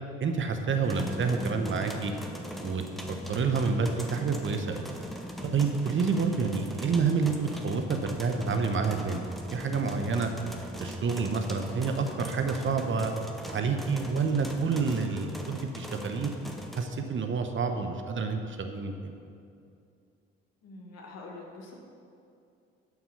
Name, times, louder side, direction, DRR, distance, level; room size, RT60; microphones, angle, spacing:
voice 1, 0.2-2.1 2.6-2.8 3.3-4.9 5.4-10.3 10.8-13.1 13.5-16.3 16.8-19.2, right 5 dB, 40° right, 5 dB, 0.9 m, -28 dB
sound 1, 0.8-16.9, equal, ahead, 1.2 m, -40 dB
voice 2, 20.6-21.7, left 3 dB, 55° left, 0 dB, 1.8 m, -45 dB
11.5 x 5.9 x 5.5 m, 2.5 s
figure-of-eight pair, 45°, 31 cm